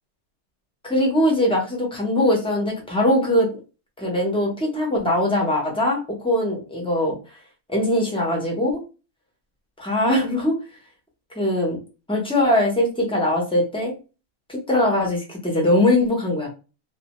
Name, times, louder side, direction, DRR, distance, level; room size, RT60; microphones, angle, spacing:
voice 1, 0.8-3.5 4.0-7.1 7.7-8.8 9.8-10.6 11.4-11.8 12.1-13.9 14.5-16.5, left 1 dB, 10° left, -1 dB, 0.4 m, -21 dB
2.7 x 2.1 x 2.9 m, 0.32 s
omnidirectional pair, 1.6 m